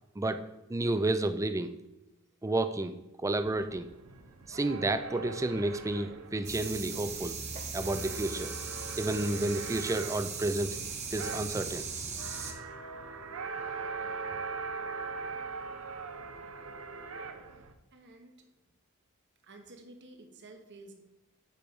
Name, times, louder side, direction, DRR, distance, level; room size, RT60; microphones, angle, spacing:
voice 1, 0.2-1.7 2.4-3.9 4.5-7.4 7.7-8.5 9.0-10.8 11.1-11.9, right 2 dB, 15° right, 10 dB, 0.5 m, -31 dB
sound 1, 3.3-17.7, right 4 dB, 75° right, 0.8 m, -42 dB
sound 2, 6.4-12.5, right 5 dB, 35° right, 1.1 m, -38 dB
voice 2, 17.9-18.4 19.4-20.9, right 2 dB, 60° right, 4 dB, 1.3 m, -52 dB
8.5 x 4.6 x 5.4 m, 0.94 s
head